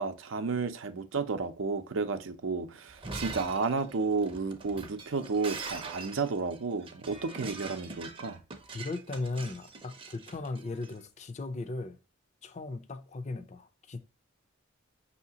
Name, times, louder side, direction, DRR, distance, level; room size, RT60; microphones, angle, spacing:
voice 1, 0.0-8.4, right 4 dB, 85° right, 0.6 m, -32 dB
Shatter, 2.9-10.9, right 4 dB, 25° right, 0.6 m, -43 dB
voice 2, 8.7-12.0 12.4-14.0, left 3 dB, 35° left, 0.5 m, -37 dB
5.6 x 2.8 x 2.8 m
head